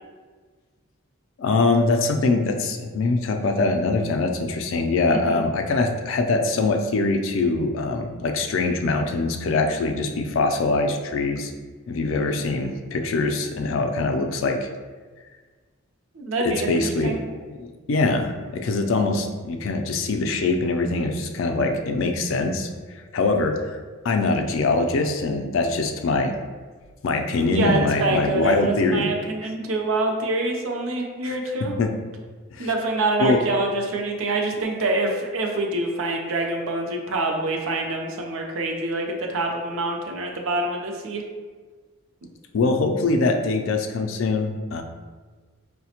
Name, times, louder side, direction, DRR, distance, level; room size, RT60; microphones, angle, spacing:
voice 1, 1.4-11.5 11.9-14.7 16.4-17.2 17.5-22.7 22.9-23.8 24.0-26.3 27.0-29.1 31.2-31.3 31.8-31.9 32.5-32.7 33.2-33.4 42.5-44.8, left 3 dB, 65° left, 5 dB, 0.3 m, -23 dB
voice 2, 5.1-5.4 16.1-17.2 27.4-31.7 32.6-41.2, right 2 dB, 70° right, 2 dB, 0.5 m, -26 dB
4.8 x 2.1 x 2.8 m, 1.4 s
head